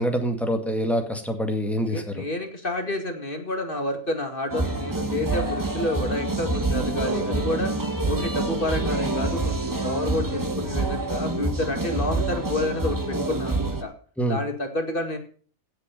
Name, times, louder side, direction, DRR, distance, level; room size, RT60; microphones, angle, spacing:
voice 1, 0.0-2.0 14.2-14.4, equal, ahead, 4 dB, 1.9 m, -25 dB
voice 2, 1.8-7.7 8.0-13.9 14.3-15.2, left 1 dB, 40° left, 4 dB, 2.3 m, -29 dB
sound 1, 4.5-13.8, right 2 dB, 15° right, 1.2 m, -27 dB
16.5 x 7.1 x 5.3 m, 0.42 s
omnidirectional pair, 1.5 m